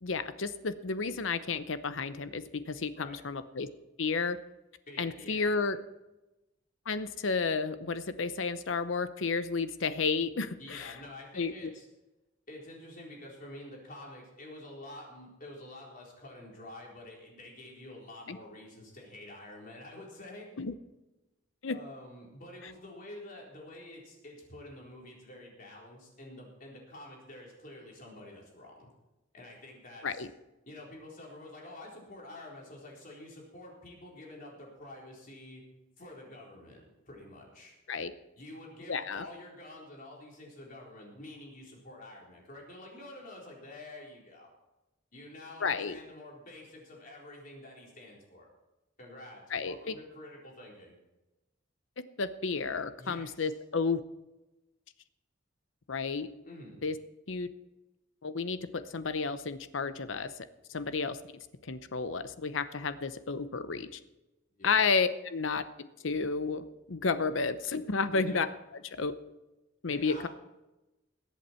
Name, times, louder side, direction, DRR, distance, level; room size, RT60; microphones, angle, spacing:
voice 1, 0.0-3.7 4.0-4.4 5.0-5.8 6.9-11.0 11.4-11.7 18.3-18.4 20.6-20.7 21.6-21.8 30.0-30.3 37.9-38.1 38.9-39.3 45.6-46.0 49.5-49.9 52.2-54.0 55.9-56.3 56.8-56.9 57.3-57.5 58.2-60.3 60.7-61.2 61.6-64.0 64.6-65.6 66.0-68.5 68.9-69.2 69.8-70.3, left 4 dB, 75° left, 12 dB, 0.8 m, -31 dB
voice 2, 4.9-5.5 10.6-11.9 12.5-20.5 21.7-28.9 29.3-30.2 30.6-35.6 36.0-37.8 38.4-44.5 45.1-48.5 49.0-51.0 53.0-53.5 56.4-56.8 64.6-64.8 68.1-68.5 69.9-70.3, left 1 dB, 45° left, -2 dB, 4.0 m, -48 dB
21.5 x 8.3 x 4.5 m, 1.0 s
head